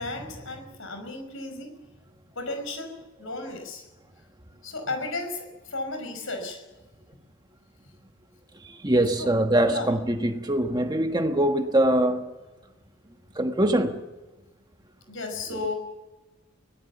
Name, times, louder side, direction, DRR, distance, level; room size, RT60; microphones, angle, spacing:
voice 1, 0.0-1.7 2.3-3.9 4.6-6.6 9.2-9.3 9.6-9.9 15.1-15.7, left 2 dB, 60° left, 5.5 m, -34 dB
voice 2, 8.6-12.3 13.3-14.1, right 1 dB, 20° right, 1.3 m, -23 dB
23.5 x 18.0 x 7.2 m
head